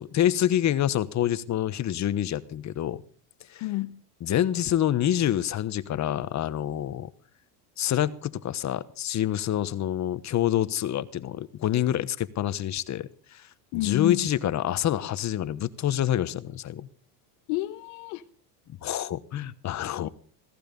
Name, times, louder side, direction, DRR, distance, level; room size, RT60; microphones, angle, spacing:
voice 1, 0.0-3.0 3.5-3.7 4.2-7.1 7.8-13.5 13.7-16.9 18.8-20.1, left 11 dB, 40° left, 1.2 m, -27 dB
voice 2, 3.6-4.0 13.7-14.3 17.5-18.2 20.0-20.1, left 18 dB, 75° left, 1.2 m, -30 dB
17.5 x 15.0 x 5.3 m
supercardioid pair, 120°, 44 cm